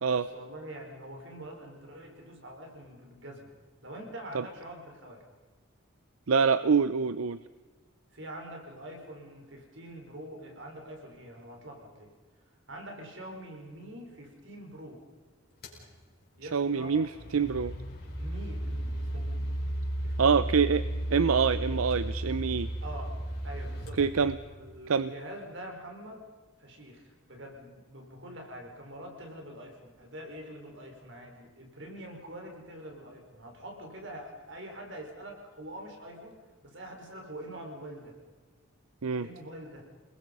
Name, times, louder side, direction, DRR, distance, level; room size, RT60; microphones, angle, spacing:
voice 1, 0.0-3.5 3.8-5.2 8.1-12.1 12.7-15.0 16.4-17.0 18.2-19.5 20.0-20.6 22.8-23.1 23.4-24.3 24.6-26.2 26.6-38.2 39.2-39.8, right 1 dB, 60° right, 2 dB, 5.0 m, -45 dB
voice 2, 6.3-7.4 16.4-17.7 20.2-20.8 21.1-22.7 24.0-24.4 24.9-25.1 39.0-39.3, right 5 dB, 85° right, 14 dB, 0.6 m, -25 dB
sound 1, 15.6-15.8 16.7-24.7, right 1 dB, 50° left, 5.2 m, -34 dB
28.0 x 20.5 x 5.4 m, 1.3 s
head